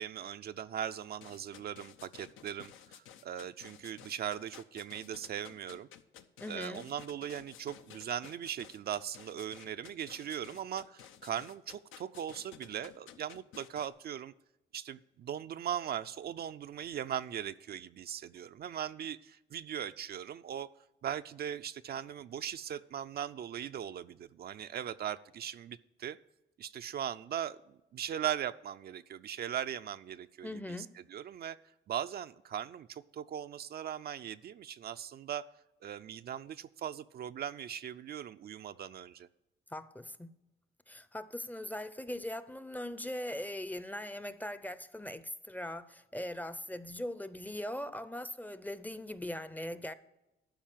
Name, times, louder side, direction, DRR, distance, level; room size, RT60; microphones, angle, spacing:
voice 1, 0.0-5.9 6.5-14.3 14.7-20.7 21.0-26.2 26.6-31.6 31.9-35.4 35.8-39.3, right 9 dB, 50° right, 0.4 m, -39 dB
sound 1, 1.1-13.9, left 9 dB, 85° left, 0.7 m, -53 dB
voice 2, 6.4-6.9 30.4-30.9 39.7-40.3 40.9-49.9, left 1 dB, 10° left, 0.5 m, -40 dB
12.0 x 4.8 x 7.4 m
cardioid pair, 90°, 20 cm